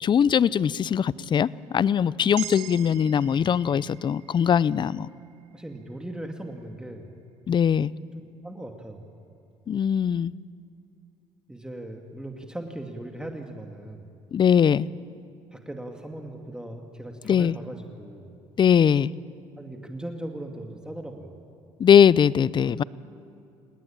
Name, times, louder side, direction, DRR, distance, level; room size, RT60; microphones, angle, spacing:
voice 1, 0.0-5.1 7.5-7.9 9.7-10.3 14.3-14.9 17.3-17.5 18.6-19.1 21.8-22.8, left 8 dB, 40° left, 20 dB, 0.6 m, -21 dB
sound 1, 2.4-6.6, right 16 dB, 70° right, 0.8 m, -43 dB
voice 2, 3.3-3.8 5.5-7.1 8.4-9.1 11.5-14.1 15.5-18.4 19.6-21.4, right 1 dB, 5° right, 3 dB, 2.4 m, -39 dB
28.0 x 19.0 x 8.8 m, 2.6 s
supercardioid pair, 85°, 12 cm